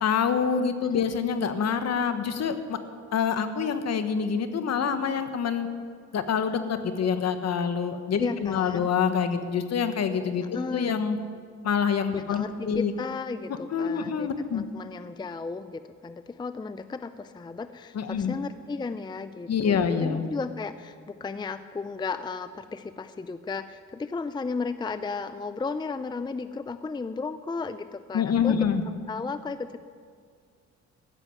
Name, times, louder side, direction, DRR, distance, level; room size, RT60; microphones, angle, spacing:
voice 1, 0.0-2.8 3.1-5.7 6.1-10.4 10.7-11.2 11.6-12.9 13.7-14.6 17.9-18.3 19.5-20.2 28.1-28.8, left 6 dB, 55° left, 9 dB, 1.3 m, -26 dB
voice 2, 8.2-8.9 10.5-11.0 12.1-28.6 29.1-29.8, left 4 dB, 15° left, 12 dB, 0.5 m, -34 dB
14.0 x 7.6 x 9.8 m, 2.1 s
cardioid pair, 90°, 30 cm